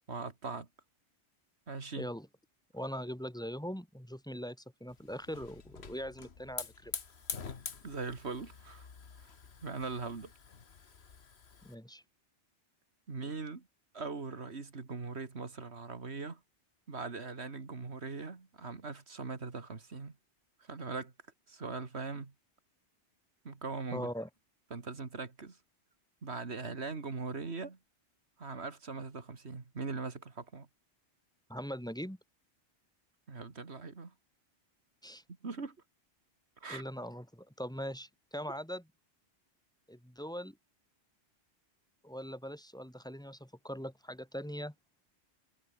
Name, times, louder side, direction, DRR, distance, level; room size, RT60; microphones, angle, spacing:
voice 1, 0.1-0.7 1.7-2.1 7.8-8.9 9.2-9.3 9.6-10.3 13.1-13.7 13.9-16.4 16.9-20.2 20.6-21.1 21.5-22.3 23.4-24.1 24.7-25.6 26.2-27.8 28.4-30.7 33.3-34.1 35.4-35.8 36.6-36.8, right 4 dB, 65° right, 2.5 m, -40 dB
voice 2, 2.0-2.3 2.7-6.9 11.6-12.0 23.9-24.3 31.5-32.2 35.0-35.2 36.7-38.8 39.9-40.6 42.0-44.7, equal, 5° left, 3.1 m, -41 dB
Hiss / Fire, 4.9-11.7, left 6 dB, 65° left, 1.7 m, -46 dB
omnidirectional pair, 1.2 m